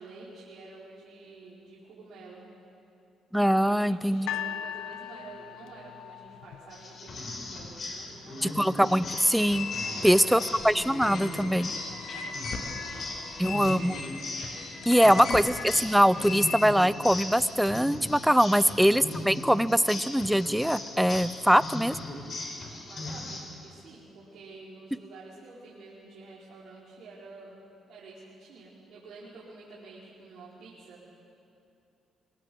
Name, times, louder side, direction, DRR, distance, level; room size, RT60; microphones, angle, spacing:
voice 1, 0.0-2.4 3.6-8.6 9.8-10.5 11.8-13.7 14.6-15.3 18.4-18.7 22.9-27.5 27.9-31.0, right 3 dB, 70° right, -8 dB, 4.8 m, -49 dB
voice 2, 3.3-4.3 8.4-9.7 10.0-11.7 13.4-14.0 14.9-22.0, equal, ahead, 17 dB, 0.6 m, -23 dB
sound 1, 4.3-7.4 8.2-8.3, left 11 dB, 90° left, 0.6 m, -38 dB
sound 2, 6.7-23.4, left 2 dB, 50° left, 4.4 m, -39 dB
sound 3, 9.1-16.7, left 4 dB, 65° left, 2.5 m, -38 dB
23.5 x 19.0 x 7.8 m, 2.7 s
cardioid pair, 90°, 0 cm